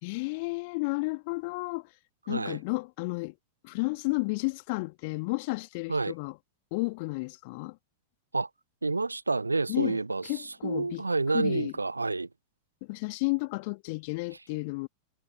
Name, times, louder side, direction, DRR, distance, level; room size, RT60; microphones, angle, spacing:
voice 1, 0.0-1.9 2.3-3.4 3.6-6.4 6.7-7.8 9.7-11.0 11.3-11.7 12.8-14.9, left 27 dB, 50° left, 2.6 m, -32 dB
voice 2, 2.3-2.6 5.9-6.1 8.3-8.5 8.8-12.3, right 3 dB, 80° right, 0.8 m, -29 dB
figure-of-eight pair, 90°, 0 cm